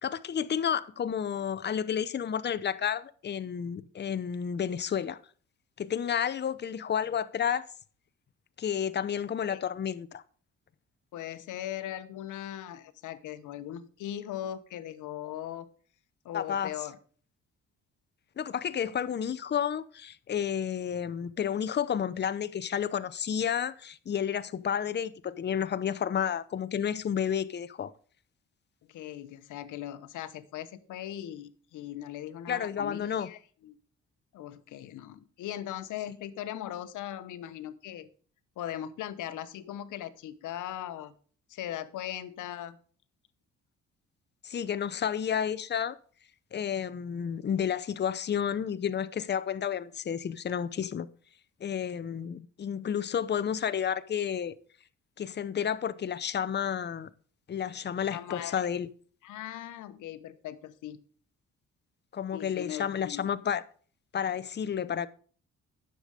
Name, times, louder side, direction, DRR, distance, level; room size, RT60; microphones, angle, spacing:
voice 1, 0.0-5.2 5.8-7.6 8.6-10.2 16.3-16.7 18.4-27.9 32.5-33.3 44.4-46.0 46.5-51.1 51.6-54.5 55.2-57.1 57.5-58.9 62.1-63.6 64.1-65.1, left 8 dB, 35° left, 0.7 m, -31 dB
voice 2, 11.1-15.7 16.2-17.0 28.9-33.8 34.3-38.1 38.6-41.1 41.5-42.8 58.1-58.7 59.2-61.0 62.3-63.3, left 11 dB, 80° left, 0.9 m, -39 dB
9.9 x 6.8 x 5.0 m
cardioid pair, 90°, 30 cm